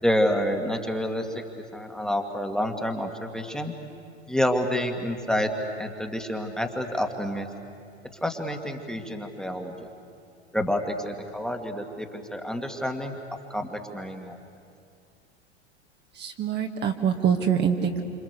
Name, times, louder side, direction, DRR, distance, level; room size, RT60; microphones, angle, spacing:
voice 1, 0.0-1.4 1.7-3.7 4.3-5.5 5.8-7.5 8.2-9.9 10.5-13.2 13.5-14.4, equal, ahead, 3 dB, 2.2 m, -28 dB
voice 2, 16.1-18.0, right 7 dB, 30° right, 3 dB, 1.9 m, -25 dB
28.0 x 27.0 x 6.8 m, 2.3 s
figure-of-eight pair, 90°, 34 cm